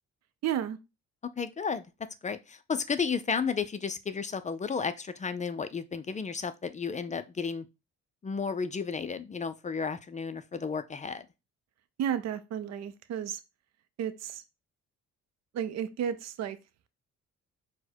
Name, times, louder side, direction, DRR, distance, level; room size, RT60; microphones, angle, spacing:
voice 1, 0.4-0.8 12.0-13.4 14.0-14.4 15.5-16.6, right 9 dB, 60° right, 0.5 m, -32 dB
voice 2, 1.4-1.8 2.2-7.7 8.2-11.2, left 5 dB, 25° left, 0.4 m, -33 dB
4.5 x 2.2 x 4.3 m
cardioid pair, 90°, 30 cm